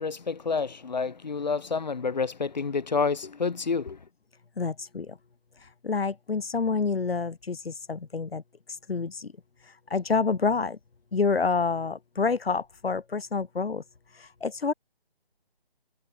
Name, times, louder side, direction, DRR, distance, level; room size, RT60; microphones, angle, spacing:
voice 1, 0.0-4.0, left 5 dB, 45° left, 2.7 m, -29 dB
voice 2, 4.6-5.1 5.8-8.4 8.9-9.3 9.9-10.8 11.1-13.8 14.4-14.7, left 4 dB, 90° left, 1.5 m, -27 dB
hypercardioid pair, 175°, 29 cm